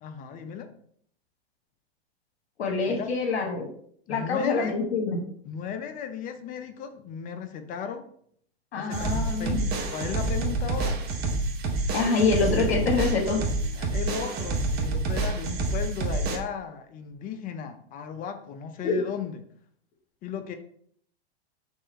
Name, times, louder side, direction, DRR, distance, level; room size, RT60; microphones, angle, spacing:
voice 1, 0.0-0.7 2.9-3.1 4.1-4.7 5.5-8.0 8.7-9.6 9.9-11.0 13.7-19.4 20.2-20.5, left 7 dB, 25° left, 7 dB, 0.5 m, -35 dB
voice 2, 2.6-3.7 4.1-5.2 8.7-9.6 11.9-13.4 18.8-19.1, left 4 dB, 80° left, 0 dB, 1.1 m, -25 dB
sound 1, 8.9-16.4, right 2 dB, 30° right, 0.9 m, -28 dB
sound 2, 12.5-14.9, right 4 dB, 5° right, 1.3 m, -46 dB
3.6 x 3.2 x 4.3 m, 0.63 s
hypercardioid pair, 120°, 32 cm